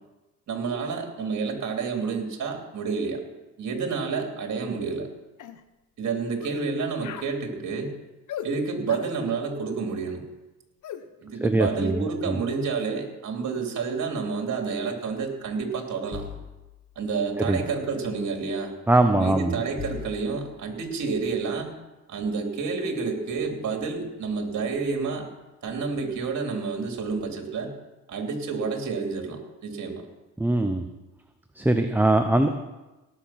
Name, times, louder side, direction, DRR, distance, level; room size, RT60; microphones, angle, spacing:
voice 1, 0.5-3.2 3.6-5.1 6.0-7.9 8.4-10.2 11.2-16.2 16.9-18.7 19.2-21.7 22.1-25.3 25.6-27.7 28.1-30.1, right 4 dB, 55° right, 3 dB, 3.0 m, -29 dB
sound 1, 4.8-5.0 5.4-5.6 6.4-6.7 7.0-7.3 8.3-8.5 8.9-9.1 10.8-11.0, left 10 dB, 60° left, 1.0 m, -38 dB
voice 2, 11.4-12.4 17.4-17.6 18.9-19.6 30.4-30.8 31.5-32.5, right 2 dB, 5° right, 6 dB, 0.8 m, -22 dB
sound 2, 16.1-17.7 18.9-19.0 19.7-21.5 23.1-23.2 23.4-24.0 24.7-25.3 26.0-26.2, left 7 dB, 25° left, 2.0 m, -43 dB
18.0 x 6.9 x 5.9 m, 1.1 s
cardioid pair, 95°, 34 cm